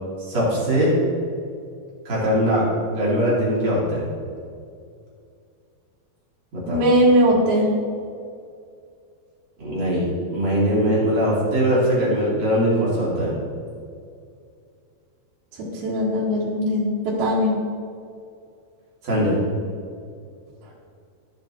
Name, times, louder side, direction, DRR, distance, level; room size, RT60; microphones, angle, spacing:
voice 1, 0.2-1.0 2.0-2.6 2.9-4.1 6.5-6.8 9.6-13.3 19.0-19.4, equal, 45° right, -7 dB, 3.2 m, -21 dB
voice 2, 6.7-7.7 15.8-16.9 17.2-17.5, equal, 70° right, -7 dB, 3.5 m, -19 dB
15.0 x 7.3 x 3.0 m, 2.4 s
omnidirectional pair, 4.7 m